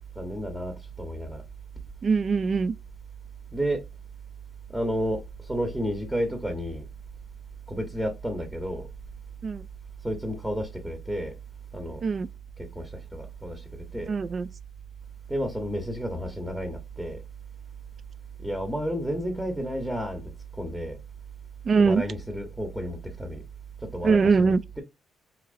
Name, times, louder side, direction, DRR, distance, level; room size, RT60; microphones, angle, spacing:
voice 1, 0.1-1.4 3.5-3.8 4.7-6.9 7.7-8.9 10.0-11.4 11.7-12.0 12.6-14.1 15.3-17.2 18.4-20.2 20.5-21.0 21.8-23.4 23.8-24.8, equal, 5° right, 0.9 m, -31 dB
voice 2, 2.0-2.7 9.4-9.6 12.0-12.3 14.1-14.5 21.6-22.0 24.0-24.6, right 5 dB, 45° right, 0.4 m, -22 dB
4.1 x 2.9 x 2.5 m
cardioid pair, 90°, 0 cm